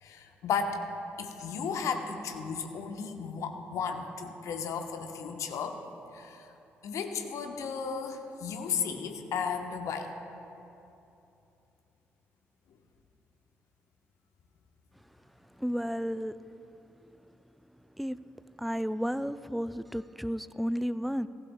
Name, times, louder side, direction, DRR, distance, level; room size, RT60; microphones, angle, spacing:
voice 1, 0.0-0.8 1.2-5.8 6.1-6.5 6.8-10.1, left 6 dB, 60° left, 5 dB, 1.0 m, -34 dB
voice 2, 15.4-16.4 18.0-18.2 18.6-21.3, equal, ahead, 14 dB, 0.4 m, -32 dB
18.0 x 15.5 x 2.3 m, 2.9 s
figure-of-eight pair, 45°, 6 cm